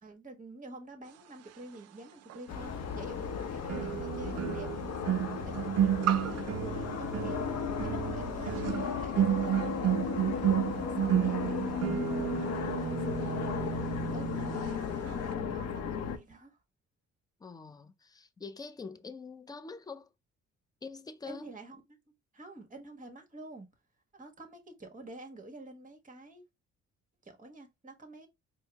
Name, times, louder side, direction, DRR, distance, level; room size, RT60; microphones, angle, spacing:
voice 1, 0.0-5.9 6.4-8.7 9.0-11.8 12.3-14.5 15.0-16.6 21.3-21.8 22.3-23.7 24.1-26.4 27.2-28.3, right 2 dB, 25° right, 1.3 m, -48 dB
sound 1, 2.3-2.4 3.7-14.8 15.0-15.3, right 11 dB, 55° right, 0.4 m, -32 dB
sound 2, 2.5-16.2, left 7 dB, 60° left, 0.7 m, -35 dB
voice 2, 17.4-20.1 20.8-21.5, left 4 dB, 15° left, 0.4 m, -45 dB
4.5 x 2.0 x 3.3 m
cardioid pair, 90°, 30 cm